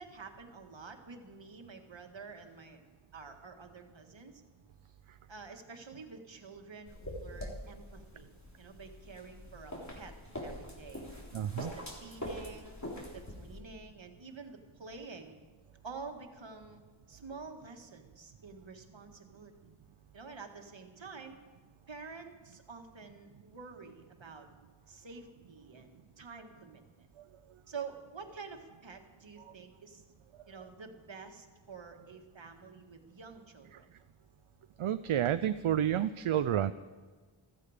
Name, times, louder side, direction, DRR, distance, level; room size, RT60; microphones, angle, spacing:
voice 1, 0.0-2.8 3.1-4.4 5.3-8.3 8.6-10.1 10.4-11.1 11.6-12.8 13.1-15.4 15.8-16.8 17.1-19.5 20.1-21.4 21.9-24.5 24.9-27.1 27.7-30.0 30.5-33.9, right 4 dB, 65° right, 4 dB, 1.8 m, -48 dB
sound 1, 6.9-13.6, left 1 dB, 35° left, 3.5 m, -44 dB
voice 2, 11.3-11.7 34.8-36.7, right 10 dB, 80° right, 12 dB, 0.6 m, -30 dB
15.5 x 14.5 x 5.0 m, 1.4 s
wide cardioid pair, 75°, 49 cm